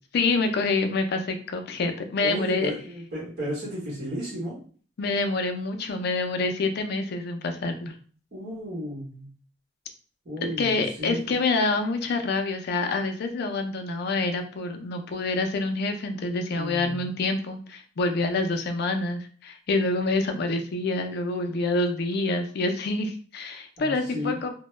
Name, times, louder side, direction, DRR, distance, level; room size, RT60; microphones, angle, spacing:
voice 1, 0.1-2.7 5.0-7.9 10.6-24.5, left 3 dB, 60° left, 6 dB, 0.4 m, -27 dB
voice 2, 2.2-4.6 8.3-9.3 10.2-11.3 16.5-17.1 23.8-24.4, equal, 55° right, -7 dB, 1.0 m, -33 dB
2.1 x 2.1 x 3.0 m, 0.43 s
head